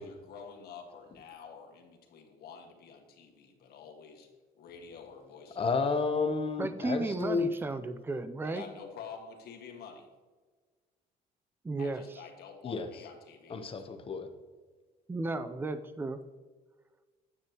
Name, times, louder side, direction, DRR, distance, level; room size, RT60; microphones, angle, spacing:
voice 1, 0.0-4.3 4.6-5.8 8.4-10.1 11.8-13.9, left 6 dB, 65° left, 2 dB, 1.7 m, -48 dB
voice 2, 5.6-7.5 12.6-12.9 13.5-14.3, left 4 dB, 35° left, 8 dB, 0.9 m, -31 dB
voice 3, 6.6-8.6 11.6-12.0 15.1-16.2, right 2 dB, 15° right, 11 dB, 0.5 m, -34 dB
9.5 x 8.1 x 3.0 m, 1.4 s
cardioid pair, 110°, 17 cm